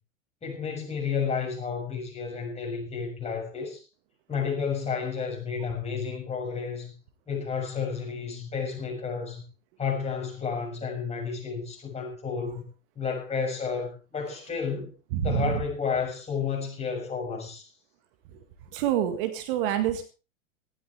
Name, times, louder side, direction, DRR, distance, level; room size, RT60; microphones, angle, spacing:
voice 1, 0.4-3.8 4.3-6.9 7.3-9.4 9.8-12.6 12.9-14.9 15.2-17.7, left 6 dB, 15° left, 0 dB, 6.5 m, -31 dB
voice 2, 15.1-15.6 18.7-20.0, right 11 dB, 45° right, 7 dB, 1.8 m, -26 dB
18.5 x 13.5 x 3.5 m, 0.33 s
figure-of-eight pair, 95°, 39 cm